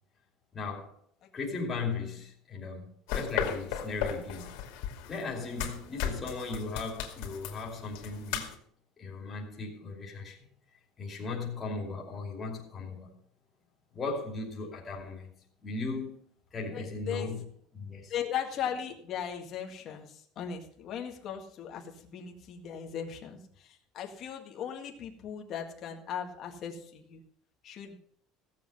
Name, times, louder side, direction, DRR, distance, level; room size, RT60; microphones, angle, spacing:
voice 1, 0.5-0.9 1.3-4.5 5.1-8.5 9.0-10.5 11.0-13.1 13.9-15.3 15.6-16.2 16.5-17.5 17.7-18.1, left 3 dB, 20° left, 2.8 m, -37 dB
sound 1, 3.1-8.5, left 9 dB, 90° left, 2.4 m, -36 dB
voice 2, 16.7-17.3 18.1-27.2 27.6-28.0, left 8 dB, 35° left, 1.9 m, -38 dB
16.5 x 7.7 x 5.6 m
cardioid pair, 180°, 0 cm